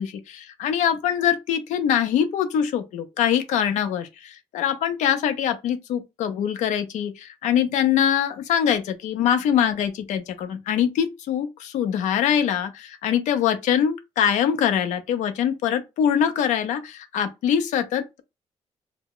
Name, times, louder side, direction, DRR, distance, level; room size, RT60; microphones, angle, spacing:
voice 1, 0.0-18.2, left 9 dB, 90° left, 0.5 m, -23 dB
2.1 x 2.0 x 3.7 m
cardioid pair, 140°, 12 cm